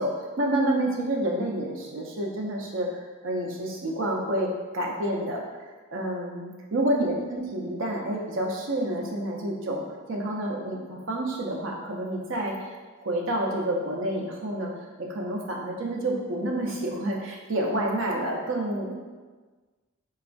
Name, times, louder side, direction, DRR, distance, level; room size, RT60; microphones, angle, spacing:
voice 1, 0.0-5.4 5.9-9.8 10.1-12.6 13.0-14.7 15.0-18.9, right 1 dB, 65° right, -1 dB, 0.5 m, -29 dB
4.1 x 2.3 x 2.5 m, 1.4 s
head